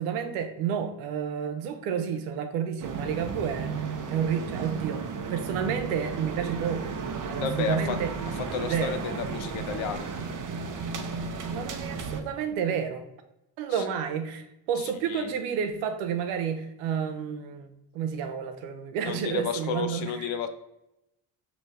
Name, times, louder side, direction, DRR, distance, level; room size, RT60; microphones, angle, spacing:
voice 1, 0.0-5.0 5.3-8.1 8.6-9.0 11.5-13.0 13.6-20.5, right 7 dB, 85° right, 7 dB, 0.7 m, -30 dB
sound 1, 2.8-12.2, right 5 dB, 40° right, 0.7 m, -34 dB
voice 2, 7.3-8.0 8.5-10.1 13.7-13.8 14.8-15.3 19.0-20.5, left 6 dB, 65° left, 8 dB, 0.7 m, -32 dB
5.3 x 2.8 x 3.2 m, 0.88 s
supercardioid pair, 60°, 49 cm